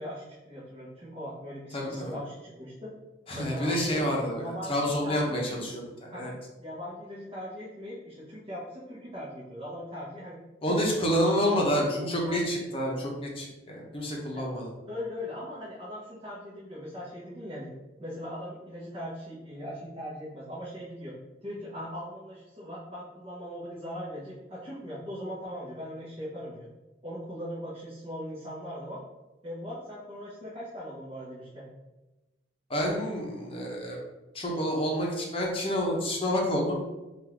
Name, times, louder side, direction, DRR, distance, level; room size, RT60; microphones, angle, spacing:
voice 1, 0.0-2.9 3.3-4.1 4.3-5.7 6.1-6.3 6.6-10.4 10.7-11.0 12.2-12.5 14.3-14.4 14.9-17.7 18.0-21.1 21.4-26.7 27.0-29.0 29.4-31.6, equal, 30° right, -10 dB, 1.1 m, -40 dB
voice 2, 1.7-2.1 3.3-6.3 10.6-14.7 32.7-34.0 34.3-36.7, equal, 30° left, -2 dB, 0.8 m, -28 dB
3.9 x 2.5 x 4.6 m, 1.1 s
head